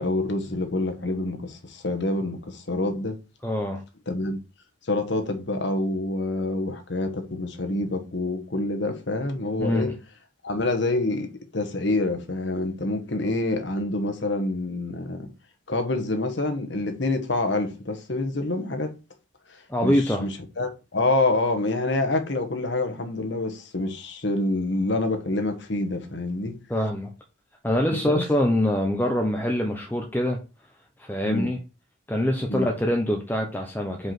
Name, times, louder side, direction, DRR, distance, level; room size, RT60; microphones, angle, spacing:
voice 1, 0.0-3.2 4.1-4.4 4.9-9.9 10.4-15.3 15.7-18.9 19.5-26.6 27.9-28.2 31.2-31.5 32.5-32.7, left 2 dB, 60° left, 1.3 m, -27 dB
voice 2, 3.4-3.8 9.6-10.0 19.7-20.3 26.7-27.1 27.6-30.4 31.0-31.6 32.1-34.1, left 1 dB, 10° left, 0.7 m, -24 dB
5.3 x 4.9 x 5.9 m
head